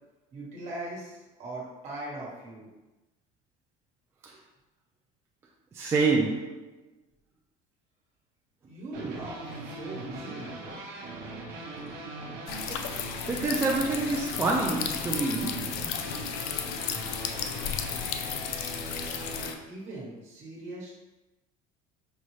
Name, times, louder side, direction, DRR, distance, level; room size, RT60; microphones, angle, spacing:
voice 1, 0.3-2.7 8.6-10.8 19.6-20.9, right 2 dB, 40° right, -5 dB, 1.4 m, -40 dB
voice 2, 5.7-6.6 12.7-12.8 13.3-15.7, right 3 dB, 15° right, -2 dB, 0.3 m, -27 dB
sound 1, 8.9-19.5, right 2 dB, 60° right, 0.9 m, -40 dB
sound 2, 12.5-19.5, left 8 dB, 65° left, 0.4 m, -34 dB
5.3 x 2.4 x 3.1 m, 1.1 s
cardioid pair, 160°, 18 cm